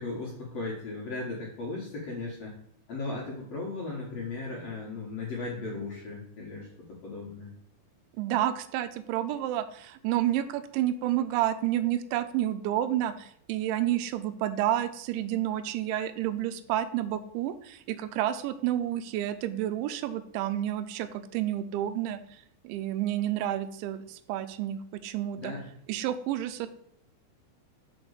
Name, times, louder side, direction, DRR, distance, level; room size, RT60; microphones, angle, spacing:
voice 1, 0.0-2.6 2.9-7.5 25.4-25.6, left 3 dB, 65° left, -3 dB, 1.5 m, -36 dB
voice 2, 8.2-25.5 25.9-26.7, right 12 dB, 90° right, 11 dB, 3.0 m, -30 dB
6.1 x 5.4 x 6.5 m, 0.67 s
omnidirectional pair, 5.2 m